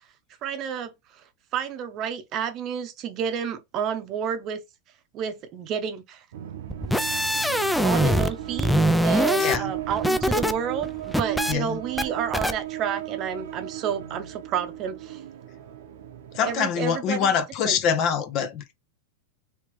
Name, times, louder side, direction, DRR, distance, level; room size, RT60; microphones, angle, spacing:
voice 1, 0.4-0.9 1.5-4.6 5.1-6.2 7.8-8.7 9.0-15.2 16.4-17.3 17.6-17.8, right 8 dB, 40° right, 0.7 m, -30 dB
sound 1, 6.3-16.5, right 13 dB, 80° right, 0.8 m, -36 dB
sound 2, 6.7-8.3 8.6-10.5 10.8-11.5 12.0-12.1 12.3-12.5, equal, ahead, 0.4 m, -23 dB
voice 2, 9.4-9.7 11.5-11.8 16.3-18.7, left 7 dB, 45° left, 0.8 m, -25 dB
3.2 x 3.1 x 3.1 m
supercardioid pair, 125°, 0 cm